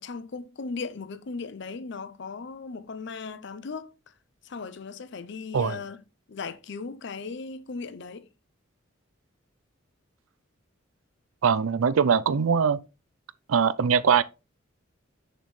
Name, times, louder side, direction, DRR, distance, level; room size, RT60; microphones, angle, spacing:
voice 1, 0.0-3.9 4.4-6.0 6.3-8.3, left 4 dB, 60° left, 0.6 m, -37 dB
voice 2, 11.4-12.8 13.5-14.2, right 6 dB, 90° right, 0.5 m, -22 dB
6.7 x 6.1 x 3.1 m
head